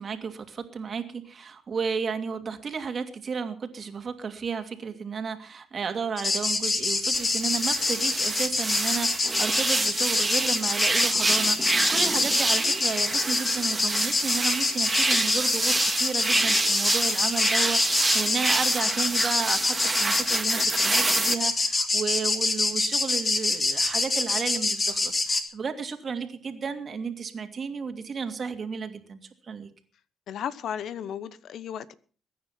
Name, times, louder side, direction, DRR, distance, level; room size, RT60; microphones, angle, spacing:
voice 1, 0.0-29.7, right 5 dB, 45° right, 7 dB, 2.6 m, -33 dB
sound 1, 6.2-25.4, left 3 dB, 30° left, 3.2 m, -26 dB
sound 2, 7.1-21.3, right 2 dB, 20° right, 2.3 m, -27 dB
voice 2, 30.3-31.9, left 9 dB, 70° left, 16 dB, 1.0 m, -34 dB
21.5 x 9.5 x 5.9 m, 0.41 s
cardioid pair, 90°, 0 cm